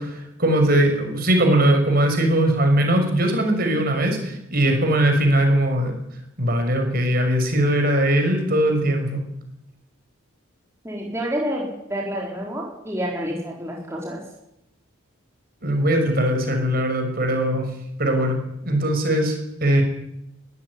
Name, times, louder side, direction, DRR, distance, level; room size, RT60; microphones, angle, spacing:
voice 1, 0.0-5.9 6.4-9.2 15.6-17.7 18.0-19.8, right 1 dB, 45° right, 4 dB, 5.9 m, -20 dB
voice 2, 10.8-14.2, equal, 15° right, -2 dB, 4.5 m, -28 dB
23.0 x 14.0 x 9.8 m, 0.82 s
head